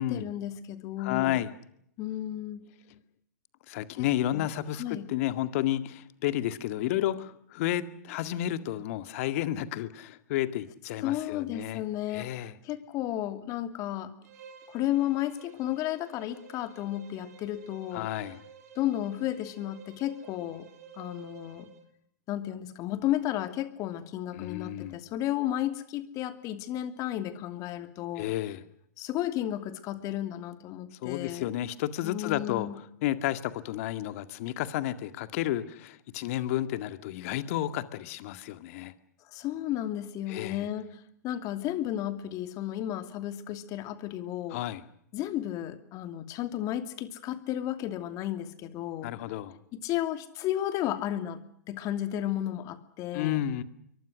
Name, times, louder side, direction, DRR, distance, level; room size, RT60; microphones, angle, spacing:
voice 1, 0.0-1.4 2.0-2.6 4.0-4.1 4.3-4.5 4.8-5.1 11.0-14.1 14.7-18.1 18.8-20.7 21.0-21.7 22.3-28.3 29.0-31.5 32.0-32.8 39.3-44.6 45.1-49.1 49.8-51.4 51.7-53.4, left 12 dB, 35° left, 9 dB, 2.7 m, -33 dB
voice 2, 1.0-1.5 2.9-3.0 3.7-11.8 12.1-12.5 17.9-18.4 24.3-25.0 28.2-28.6 31.0-38.9 40.3-40.7 44.5-44.8 49.0-49.5 53.1-53.6, left 13 dB, 50° left, 11 dB, 2.0 m, -31 dB
Bowed string instrument, 14.2-21.9, right 6 dB, 60° right, 6.1 m, -51 dB
27.5 x 23.5 x 6.5 m, 0.71 s
hypercardioid pair, 110°, 10 cm